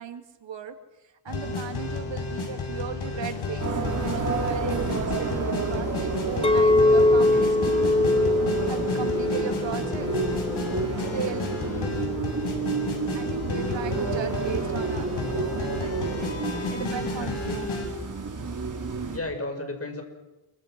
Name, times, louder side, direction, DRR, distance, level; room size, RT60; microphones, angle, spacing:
voice 1, 0.0-8.0 8.7-10.1 11.0-11.6 13.1-16.2 16.7-17.7, right 8 dB, 60° right, 6 dB, 2.8 m, -37 dB
sound 1, 1.3-17.9, left 3 dB, 70° left, 6.8 m, -32 dB
sound 2, 3.6-19.2, right 4 dB, 35° right, 4.5 m, -30 dB
Chink clink, 6.4-10.8 11.2-11.6, left 2 dB, 10° left, 0.7 m, -22 dB
voice 2, 17.1-17.8 19.1-20.0, left 2 dB, 30° left, 5 dB, 5.4 m, -34 dB
28.0 x 23.5 x 6.2 m, 1.0 s
wide cardioid pair, 115°, 50 cm